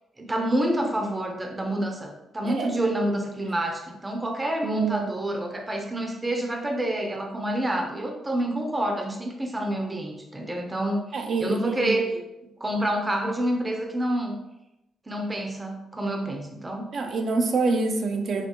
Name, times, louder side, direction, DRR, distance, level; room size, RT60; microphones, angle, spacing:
voice 1, 0.2-11.0 11.4-12.1 12.6-14.4 15.1-16.9, right 1 dB, 20° right, 3 dB, 0.7 m, -28 dB
voice 2, 4.6-5.2 11.1-12.0 16.9-18.5, right 3 dB, 55° right, 4 dB, 0.6 m, -26 dB
5.7 x 2.6 x 3.0 m, 0.91 s
cardioid pair, 90°, 0 cm